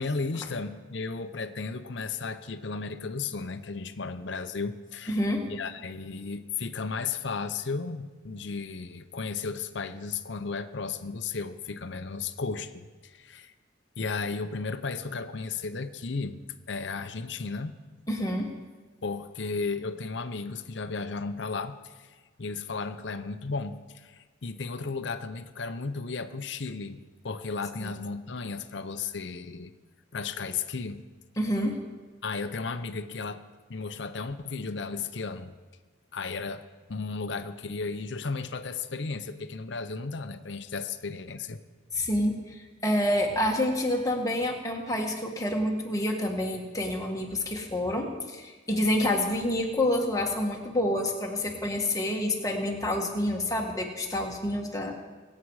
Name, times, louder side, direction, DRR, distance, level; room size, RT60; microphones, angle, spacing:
voice 1, 0.0-5.2 5.5-13.5 14.0-17.8 19.0-27.0 27.2-29.7 30.1-31.0 32.2-33.4 33.7-35.5 36.1-36.6 36.9-41.6, left 4 dB, 60° left, 10 dB, 0.7 m, -34 dB
voice 2, 5.1-5.4 18.1-18.5 27.8-27.9 31.4-31.8 41.9-54.9, left 1 dB, 15° left, 0 dB, 1.7 m, -28 dB
22.5 x 8.5 x 4.9 m, 1.3 s
head